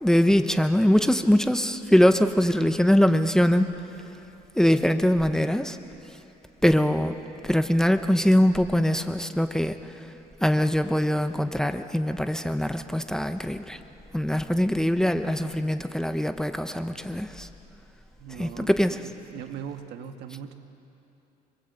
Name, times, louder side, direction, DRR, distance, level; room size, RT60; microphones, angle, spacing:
voice 1, 0.0-3.7 4.6-5.8 6.6-7.2 7.4-9.8 10.4-13.8 14.1-17.5 18.4-19.0, equal, 5° left, 8 dB, 1.0 m, -22 dB
voice 2, 18.2-19.0 19.3-20.5, right 8 dB, 80° right, 7 dB, 1.7 m, -39 dB
29.0 x 22.0 x 8.2 m, 3.0 s
cardioid pair, 110°, 17 cm